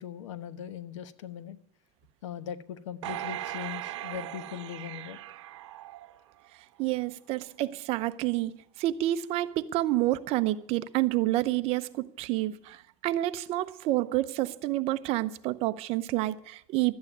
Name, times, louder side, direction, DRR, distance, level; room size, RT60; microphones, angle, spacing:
voice 1, 0.0-1.6 2.2-5.2, left 9 dB, 85° left, 1.2 m, -40 dB
sound 1, 3.0-6.5 7.0-7.1, right 14 dB, 75° right, 0.9 m, -39 dB
voice 2, 6.8-8.5 8.8-16.9, right 16 dB, 40° right, 0.7 m, -29 dB
12.5 x 8.9 x 9.4 m
supercardioid pair, 145°, 15 cm